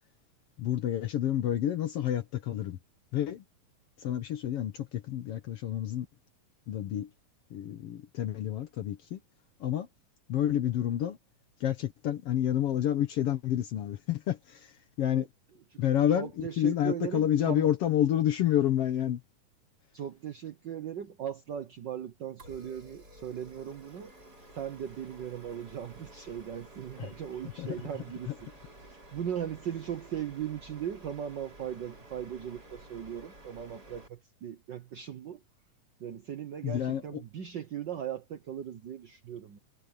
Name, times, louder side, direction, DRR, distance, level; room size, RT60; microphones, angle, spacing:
voice 1, 0.6-2.8 3.1-3.4 4.0-6.1 6.7-7.1 7.5-9.2 9.6-9.9 10.3-11.2 11.6-15.3 15.8-19.2 27.0-27.1 27.6-27.8 28.3-28.4 36.6-37.2, left 11 dB, 65° left, 1.6 m, -29 dB
voice 2, 16.1-17.7 19.9-24.1 24.5-28.3 28.8-35.4 36.0-39.6, right 9 dB, 75° right, 1.0 m, -38 dB
sound 1, 22.4-34.1, right 1 dB, 30° right, 6.2 m, -52 dB
omnidirectional pair, 3.6 m